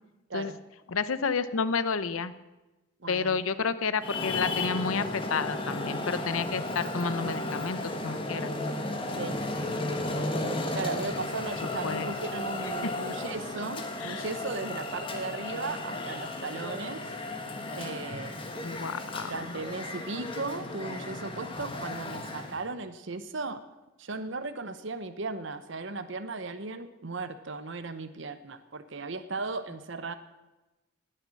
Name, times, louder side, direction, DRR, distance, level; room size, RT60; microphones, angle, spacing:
voice 1, 0.9-2.3 3.1-8.5 11.8-12.1 12.6-12.9 14.0-14.2 18.6-19.4, left 5 dB, 80° left, 14 dB, 0.7 m, -30 dB
voice 2, 3.0-3.4 9.1-9.4 10.7-17.0 17.7-18.3 19.3-23.6 24.0-30.1, right 3 dB, 60° right, 11 dB, 0.8 m, -36 dB
Traffic noise roadway noise, 4.0-22.7, left 2 dB, 25° left, 1.4 m, -34 dB
19.5 x 6.7 x 7.6 m, 1.1 s
head